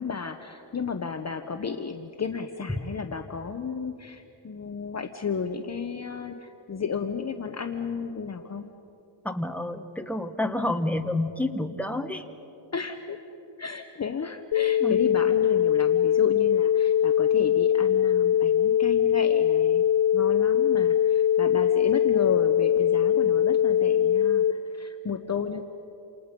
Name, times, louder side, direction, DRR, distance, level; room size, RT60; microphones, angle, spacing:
voice 1, 0.0-8.7 12.7-13.2 13.6-19.9 20.1-25.6, left 5 dB, 35° left, 6 dB, 0.9 m, -33 dB
voice 2, 9.2-12.2 14.8-15.0, left 1 dB, 5° left, 5 dB, 1.1 m, -29 dB
sound 1, 14.5-24.5, left 9 dB, 60° left, 0.6 m, -22 dB
28.5 x 28.0 x 5.3 m, 3.0 s
wide cardioid pair, 155°, 47 cm